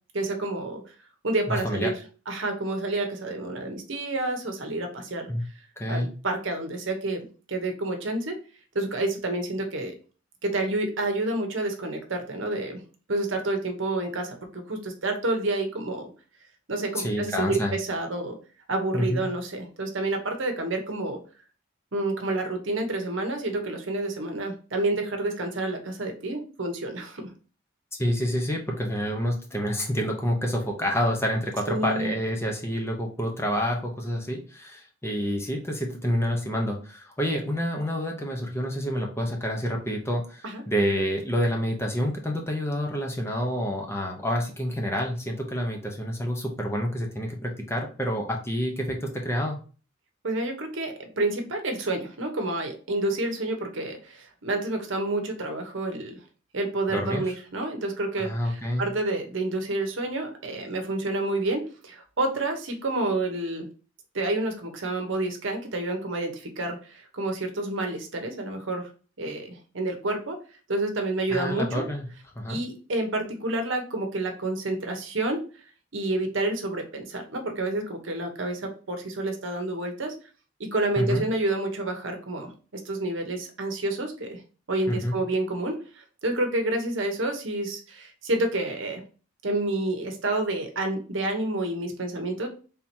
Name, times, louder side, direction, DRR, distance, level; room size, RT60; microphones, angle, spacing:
voice 1, 0.1-0.9 1.2-1.9 2.3-5.2 5.9-8.4 8.7-9.9 10.4-12.8 13.1-16.1 16.7-18.4 18.7-21.2 21.9-27.3 31.7-32.1 40.4-40.6 50.2-56.2 56.5-63.7 64.1-68.9 69.2-70.4 70.7-71.8 72.5-75.6 75.9-80.1 80.7-84.4 84.7-89.0 89.4-92.5, right 2 dB, 65° right, 4 dB, 0.9 m, -29 dB
voice 2, 1.5-1.9 5.3-5.4 5.8-6.1 17.0-17.7 18.9-19.2 28.0-49.6 56.9-57.2 58.2-58.9 71.3-72.1 72.4-72.6 81.0-81.3 84.9-85.2, equal, 10° left, 1 dB, 0.7 m, -28 dB
3.5 x 2.8 x 4.3 m, 0.37 s
head